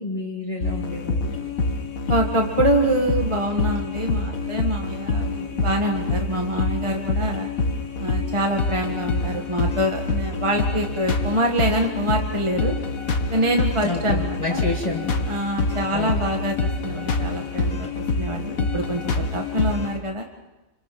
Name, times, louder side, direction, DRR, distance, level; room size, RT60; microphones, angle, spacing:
voice 1, 0.0-1.4 13.8-15.1 15.9-16.1, left 2 dB, 25° left, -3 dB, 2.5 m, -29 dB
sound 1, 0.6-20.0, left 3 dB, 85° left, 2.0 m, -26 dB
voice 2, 2.1-7.5 8.0-12.8 13.3-14.6 15.3-17.9 18.2-20.3, right 1 dB, 20° right, 2 dB, 1.7 m, -25 dB
29.0 x 26.5 x 6.0 m, 1.0 s
omnidirectional pair, 1.4 m